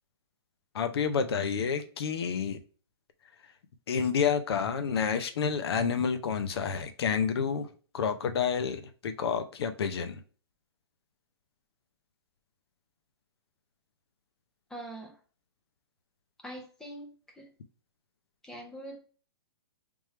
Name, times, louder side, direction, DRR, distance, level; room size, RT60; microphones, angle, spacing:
voice 1, 0.7-2.6 3.9-7.7 7.9-10.2, left 6 dB, 70° left, 0.7 m, -29 dB
voice 2, 14.7-15.2 16.4-17.5 18.4-19.0, right 1 dB, 5° left, 0.5 m, -43 dB
3.5 x 3.2 x 3.1 m
hypercardioid pair, 165°, 14 cm